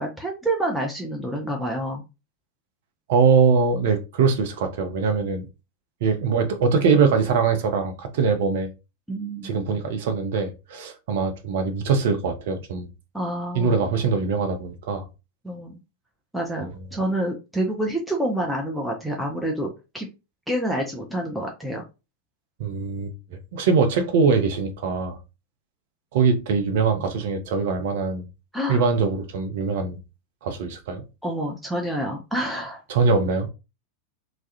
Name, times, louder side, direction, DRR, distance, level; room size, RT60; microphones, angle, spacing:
voice 1, 0.0-2.0 9.1-9.5 13.1-13.7 15.4-15.7 16.3-19.7 19.9-20.1 20.5-21.8 28.5-28.9 31.2-32.8, right 1 dB, ahead, 0.4 m, -27 dB
voice 2, 3.1-5.4 6.0-8.7 9.4-12.9 13.5-15.1 16.6-16.7 22.6-23.1 23.5-25.2 26.1-28.3 28.7-30.0 30.4-31.0 32.9-33.5, right 5 dB, 55° right, 0.5 m, -22 dB
2.3 x 2.1 x 2.7 m
figure-of-eight pair, 90°, 0 cm